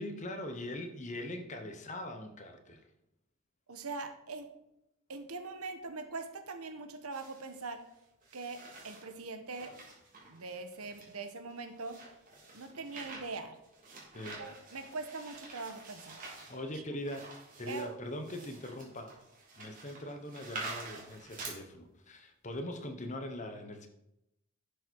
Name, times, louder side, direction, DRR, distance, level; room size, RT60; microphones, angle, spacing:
voice 1, 0.0-2.9 14.1-14.4 16.5-17.3 17.6-19.2 19.6-23.9, left 1 dB, 35° left, 6 dB, 1.2 m, -41 dB
voice 2, 3.7-4.5 5.1-7.8 8.3-9.7 10.3-12.0 12.5-13.6 14.4-16.2 16.7-16.8 17.7-17.9, right 3 dB, 80° right, 8 dB, 1.2 m, -42 dB
sound 1, 7.1-7.7 8.2-9.1 9.5-21.5, right 3 dB, 35° right, 3.1 m, -48 dB
11.5 x 7.0 x 4.6 m, 0.85 s
head